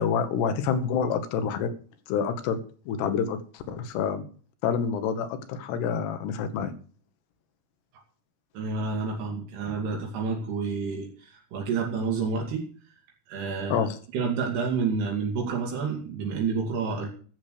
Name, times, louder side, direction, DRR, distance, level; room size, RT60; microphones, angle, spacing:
voice 1, 0.0-1.7 2.1-2.6 2.9-4.3 4.6-6.7 13.7-14.0, left 7 dB, 85° left, 9 dB, 3.4 m, -27 dB
voice 2, 8.5-12.7 13.3-13.9 14.1-17.1, right 5 dB, 80° right, 0 dB, 4.3 m, -29 dB
14.0 x 7.4 x 6.8 m, 0.42 s
omnidirectional pair, 4.7 m